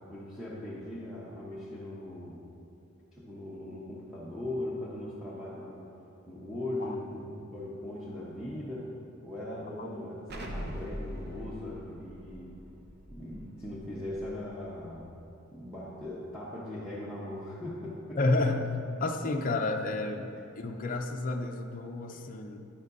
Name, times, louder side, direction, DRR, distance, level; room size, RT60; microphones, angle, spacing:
voice 1, 0.1-2.4 3.1-5.9 6.3-8.9 9.2-12.6 13.1-15.1 15.5-18.2 21.5-21.6 22.1-22.2, left 1 dB, ahead, -9 dB, 1.0 m, -39 dB
Explosion, 10.3-15.0, equal, 50° right, 0.9 m, -43 dB
voice 2, 18.2-18.7 19.0-22.6, left 2 dB, 40° left, 3 dB, 0.5 m, -30 dB
10.5 x 10.0 x 2.6 m, 2.8 s
head